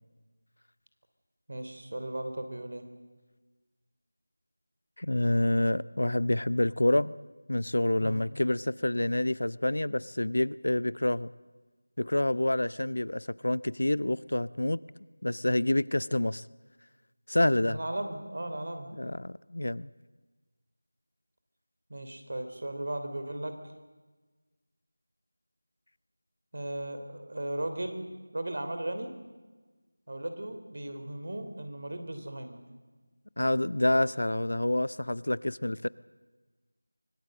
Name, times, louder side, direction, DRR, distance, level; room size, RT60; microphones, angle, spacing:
voice 1, 1.5-2.8 8.0-8.2 17.6-18.9 21.9-23.6 26.5-28.1 28.3-29.1 30.1-32.6, right 1 dB, 55° right, 8 dB, 3.2 m, -36 dB
voice 2, 5.0-7.1 7.5-11.3 12.0-14.8 15.2-16.4 17.3-17.8 19.0-19.9 33.4-35.9, left 1 dB, 75° left, 20 dB, 0.6 m, -27 dB
24.5 x 19.0 x 7.7 m, 1.3 s
figure-of-eight pair, 175°, 0 cm